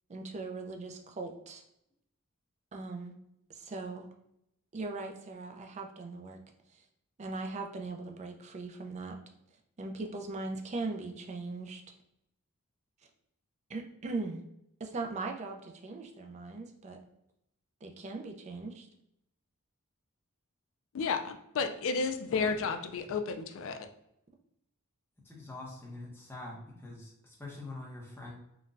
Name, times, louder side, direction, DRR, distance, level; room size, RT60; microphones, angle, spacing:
voice 1, 0.1-1.6 2.7-3.1 3.5-4.1 4.7-6.4 6.7-6.8 7.2-9.2 9.8-11.8 13.7-14.4 14.8-17.0 17.8-18.9, right 3 dB, 30° right, 4 dB, 0.4 m, -39 dB
voice 2, 20.9-23.9, left 5 dB, 60° left, 7 dB, 0.3 m, -32 dB
voice 3, 25.3-28.3, left 2 dB, 10° left, -3 dB, 0.7 m, -45 dB
3.8 x 2.2 x 2.4 m, 0.80 s
head